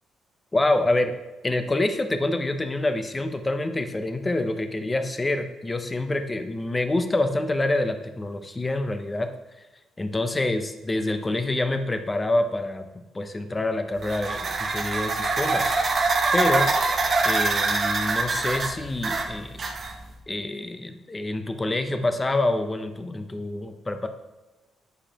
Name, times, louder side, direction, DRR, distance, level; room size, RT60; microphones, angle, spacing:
voice 1, 0.5-1.1 1.4-9.3 9.6-9.7 10.0-12.9 13.1-15.7 16.3-16.7 17.2-19.6 20.3-24.1, left 2 dB, 20° left, 8 dB, 0.6 m, -26 dB
sound 1, 14.0-20.1, right 3 dB, 45° right, 0.8 m, -24 dB
8.9 x 4.8 x 2.9 m, 1.1 s
cardioid pair, 90°, 0 cm